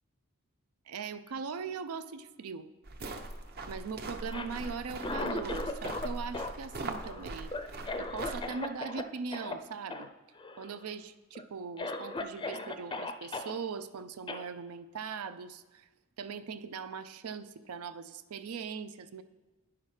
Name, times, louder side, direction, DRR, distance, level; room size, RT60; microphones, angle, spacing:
voice 1, 0.9-2.7 3.7-7.5 8.0-10.1 10.6-15.9 16.2-19.2, right 5 dB, 90° right, 13 dB, 0.5 m, -40 dB
sound 1, 2.8-8.5, right 2 dB, 45° right, 0.7 m, -41 dB
Cough, 4.2-6.1 6.3-9.0 9.3-9.5 9.9-10.1 10.4-10.9 11.3-11.4 11.8-13.5 14.3-14.4, left 2 dB, 20° left, 0.4 m, -37 dB
10.5 x 5.8 x 4.8 m, 1.2 s
head